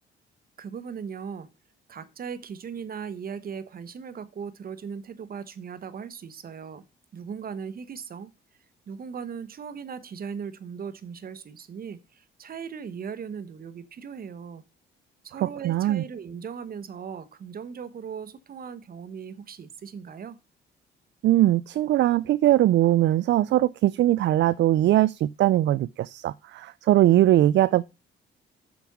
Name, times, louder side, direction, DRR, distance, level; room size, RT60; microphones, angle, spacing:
voice 1, 0.6-1.5 1.9-6.8 7.1-8.3 8.9-14.6 15.2-20.4, right 6 dB, 50° right, 1.1 m, -38 dB
voice 2, 15.4-16.0 21.2-27.8, right 14 dB, 65° right, 0.4 m, -21 dB
7.1 x 5.3 x 6.0 m
cardioid pair, 90°, 20 cm